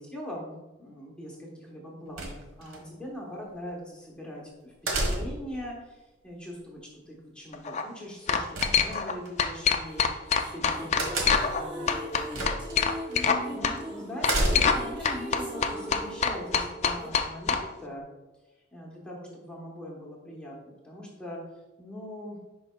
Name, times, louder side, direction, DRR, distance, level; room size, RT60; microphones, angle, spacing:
voice 1, 0.0-12.5 13.5-18.0 18.7-21.4 21.8-22.4, equal, 5° left, -3 dB, 1.0 m, -41 dB
sound 1, 2.2-2.8 4.9-5.5 8.5-9.3 11.0-11.6 12.3-12.8 13.1-13.2 14.2-14.9, right 1 dB, 90° right, 1.4 m, -29 dB
sound 2, 7.5-7.8 8.3-9.1 9.4-11.6 11.9-13.4 13.6-13.8 14.2-14.8 15.0-17.6, left 6 dB, 35° left, 0.4 m, -24 dB
sound 3, 9.8-17.1, equal, 25° right, 0.8 m, -39 dB
10.5 x 4.6 x 2.2 m, 1.1 s
head